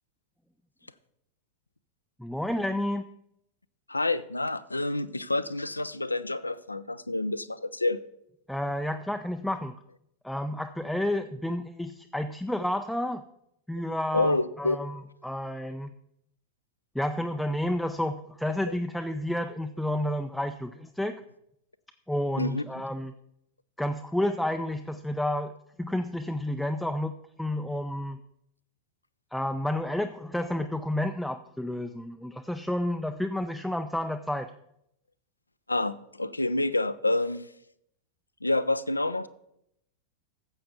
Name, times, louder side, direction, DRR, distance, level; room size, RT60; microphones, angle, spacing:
voice 1, 2.2-3.0 8.5-9.7 10.2-13.2 13.7-15.9 16.9-21.2 22.1-23.1 23.8-25.5 25.8-27.1 27.4-28.2 29.3-34.5, left 1 dB, ahead, 6 dB, 0.4 m, -30 dB
voice 2, 3.9-8.0 14.1-14.8 22.4-22.6 35.7-37.5 38.4-39.3, left 2 dB, 85° left, 14 dB, 0.4 m, -28 dB
13.5 x 7.8 x 3.4 m, 0.77 s
figure-of-eight pair, 90°, 0 cm